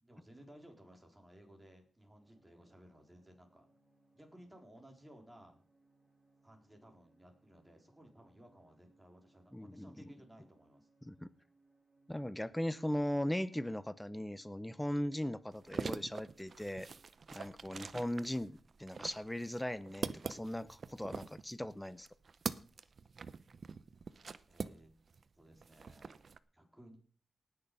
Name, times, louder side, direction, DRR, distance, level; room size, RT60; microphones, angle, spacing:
voice 1, 0.0-3.7 4.1-5.6 6.4-10.9 24.5-24.9 25.4-26.2 26.5-27.0, right 1 dB, 10° right, 2 dB, 4.0 m, -59 dB
sound 1, 2.1-17.1, right 2 dB, 25° right, 5.7 m, -72 dB
voice 2, 9.5-9.9 11.1-11.3 12.1-16.9 17.3-22.1, left 1 dB, 10° left, 15 dB, 0.7 m, -38 dB
sound 2, 15.5-25.2 25.5-26.4, right 5 dB, 55° right, 0.7 m, -44 dB
18.5 x 6.8 x 5.4 m, 0.41 s
cardioid pair, 85°, 0 cm